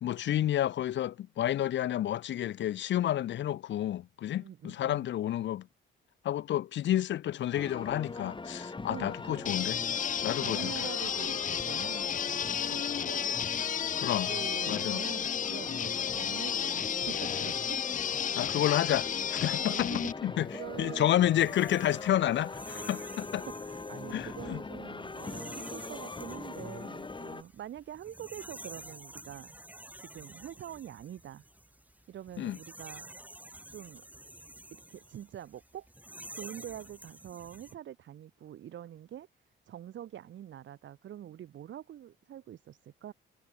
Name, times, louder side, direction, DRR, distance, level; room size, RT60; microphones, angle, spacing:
voice 1, 0.0-5.7 6.2-9.8 10.2-10.9 14.0-14.3 14.7-15.0 18.3-19.9 20.2-20.5 20.8-23.5 24.1-24.6 32.4-32.6, left 12 dB, 70° left, 1.0 m, -30 dB
voice 2, 4.4-5.1 8.8-9.5 10.4-13.2 14.3-17.8 19.6-20.1 20.5-21.5 23.6-29.5 30.0-31.4 32.1-33.1 33.7-34.0 34.7-35.9 36.3-39.3 39.7-43.1, right 11 dB, 70° right, 4.1 m, -45 dB
sound 1, 7.5-27.4, left 3 dB, 25° left, 4.4 m, -41 dB
sound 2, 9.5-20.1, left 8 dB, 40° left, 0.6 m, -32 dB
sound 3, 20.5-37.7, right 1 dB, 10° right, 6.4 m, -50 dB
cardioid pair, 90°, 20 cm